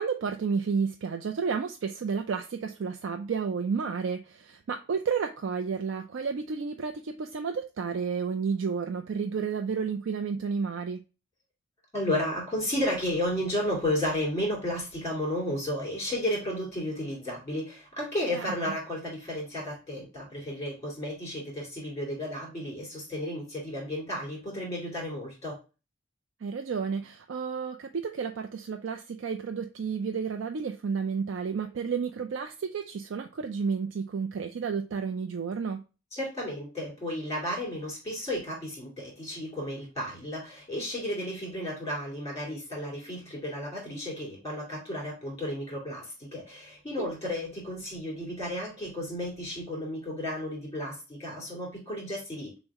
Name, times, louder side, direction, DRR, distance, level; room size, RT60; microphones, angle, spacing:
voice 1, 0.0-11.0 18.3-18.5 26.4-35.8 47.0-47.1, right 5 dB, 65° right, 5 dB, 0.4 m, -31 dB
voice 2, 11.9-25.6 36.1-52.6, left 1 dB, 15° left, -3 dB, 2.5 m, -33 dB
6.2 x 2.1 x 3.5 m, 0.31 s
head